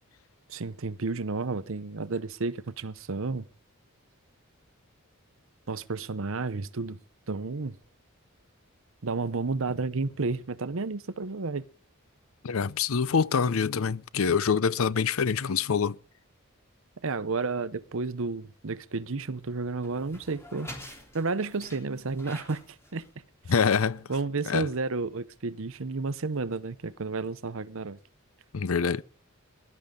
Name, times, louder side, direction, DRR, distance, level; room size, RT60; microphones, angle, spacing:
voice 1, 0.5-3.4 5.7-7.0 7.3-7.7 9.0-11.6 17.0-20.7 21.1-22.6 22.9-23.0 24.1-28.0, right 3 dB, 65° right, 0.8 m, -31 dB
voice 2, 12.4-16.0 23.5-24.0 24.5-24.6 28.5-29.0, left 6 dB, 70° left, 0.6 m, -25 dB
sound 1, 18.7-24.1, equal, 10° left, 3.6 m, -48 dB
21.0 x 12.0 x 3.8 m
head